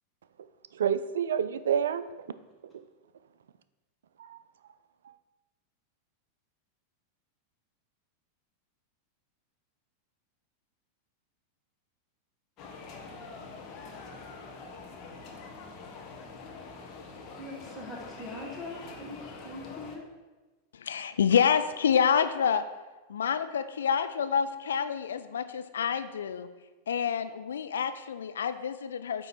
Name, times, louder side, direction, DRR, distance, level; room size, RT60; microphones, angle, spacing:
voice 1, 0.7-2.3 2.7-2.9 4.2-4.4 5.0-5.2, right 8 dB, 65° right, 0.3 m, -29 dB
sound 1, 12.6-20.0, left 4 dB, 35° left, 1.1 m, -45 dB
voice 2, 17.4-20.1, left 1 dB, ahead, 1.7 m, -42 dB
voice 3, 20.7-22.6 23.1-26.5 26.9-29.3, left 7 dB, 65° left, 0.4 m, -27 dB
8.9 x 3.0 x 5.9 m
figure-of-eight pair, 90°, 0 cm